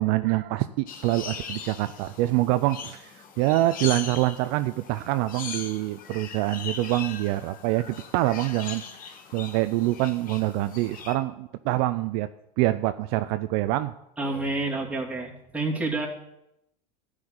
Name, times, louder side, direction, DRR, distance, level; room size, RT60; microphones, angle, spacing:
voice 1, 0.0-12.3 12.6-13.9, right 17 dB, 60° right, 11 dB, 0.5 m, -25 dB
sound 1, 0.9-11.1, left 6 dB, 45° left, 1.5 m, -40 dB
voice 2, 14.2-16.1, right 2 dB, 5° right, -2 dB, 2.7 m, -29 dB
13.0 x 5.0 x 8.8 m, 0.82 s
hypercardioid pair, 90°, 20 cm